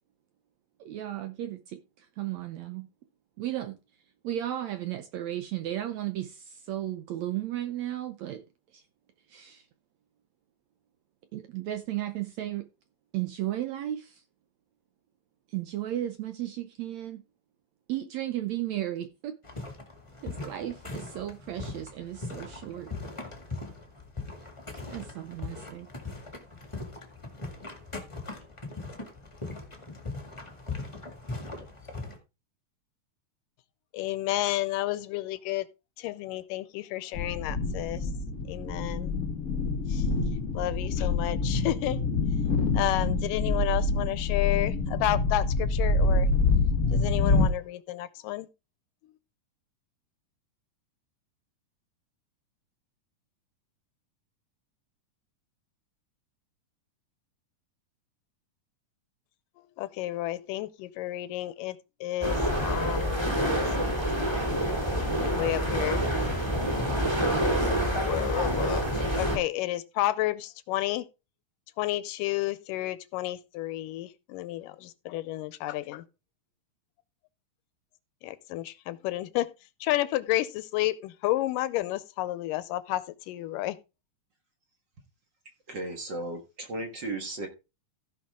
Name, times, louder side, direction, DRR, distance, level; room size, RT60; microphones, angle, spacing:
voice 1, 0.8-2.9 3.4-3.8 4.2-8.4 8.7-8.8 9.3-9.7 11.3-12.7 13.1-14.2 15.5-17.2 17.9-19.4 20.2-22.9 24.9-25.9, right 13 dB, 75° right, 1.7 m, -34 dB
sound 1, 19.4-32.2, left 3 dB, 15° left, 1.1 m, -40 dB
voice 2, 33.9-35.7 36.0-38.1 38.5-39.1 39.9-42.0 42.7-46.3 46.9-48.5 59.8-64.0 65.2-66.0 68.0-71.1 71.8-76.0 78.2-79.5 79.8-83.8, left 15 dB, 85° left, 2.3 m, -31 dB
sound 2, 37.1-47.5, left 3 dB, 50° left, 0.9 m, -26 dB
sound 3, 62.2-69.4, equal, 10° right, 2.3 m, -27 dB
voice 3, 85.7-87.5, right 2 dB, 45° right, 1.7 m, -35 dB
15.5 x 5.9 x 3.6 m
omnidirectional pair, 3.8 m